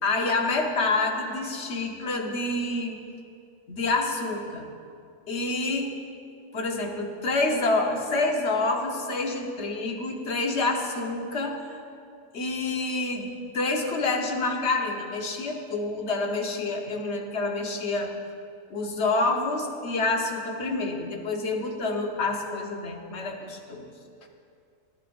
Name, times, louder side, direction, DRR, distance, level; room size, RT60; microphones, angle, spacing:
voice 1, 0.0-3.0 3.7-4.7 5.3-6.0 6.5-11.7 12.3-13.3 13.5-18.1 18.7-23.9, left 3 dB, 55° left, 1 dB, 1.3 m, -27 dB
15.5 x 12.5 x 2.5 m, 2.4 s
omnidirectional pair, 1.4 m